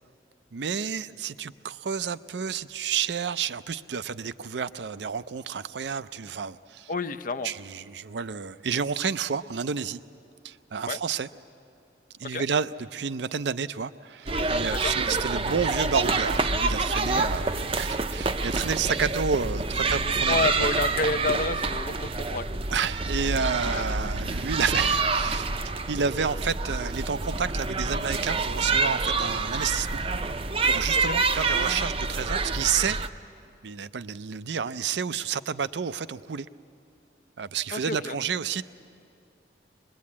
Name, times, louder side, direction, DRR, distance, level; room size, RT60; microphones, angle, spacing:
voice 1, 0.5-6.9 7.4-10.0 10.4-11.3 12.2-20.7 22.7-25.5 25.9-30.0 30.6-33.0 33.6-36.5 37.4-38.6, right 6 dB, 75° right, 14 dB, 0.5 m, -30 dB
voice 2, 6.9-7.5 10.9-11.0 12.2-12.4 14.7-14.9 20.3-22.4 23.7-23.8 31.1-31.2 37.7-38.2, left 3 dB, 50° left, 9 dB, 0.6 m, -29 dB
sound 1, 14.3-33.1, right 3 dB, 30° right, 0.6 m, -27 dB
23.0 x 21.5 x 8.5 m, 2.5 s
head